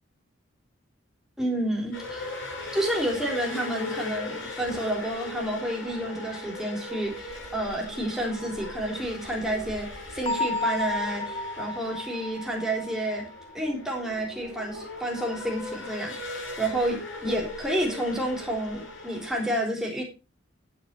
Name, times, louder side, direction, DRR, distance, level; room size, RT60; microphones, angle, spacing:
voice 1, 1.4-2.3 2.7-13.3 13.5-20.0, right 1 dB, ahead, 0 dB, 3.6 m, -30 dB
sound 1, 1.9-19.5, left 2 dB, 90° left, 7.6 m, -38 dB
Bell, 10.3-13.9, left 2 dB, 30° left, 0.6 m, -32 dB
10.5 x 9.4 x 4.3 m, 0.28 s
head